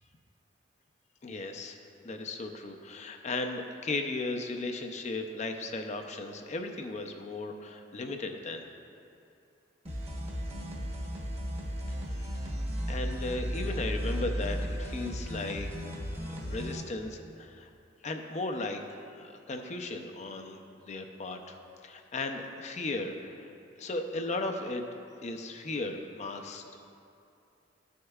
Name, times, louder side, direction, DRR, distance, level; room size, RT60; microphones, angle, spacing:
voice 1, 1.2-1.8 2.0-8.6 12.1-12.5 12.9-15.7 16.1-17.7 18.0-20.6 20.9-21.5 21.8-23.5 23.8-24.8 25.2-26.6, left 2 dB, 40° left, 5 dB, 0.5 m, -36 dB
sound 1, 9.9-16.8, equal, 35° right, 1.1 m, -35 dB
13.0 x 6.4 x 2.4 m, 2.6 s
head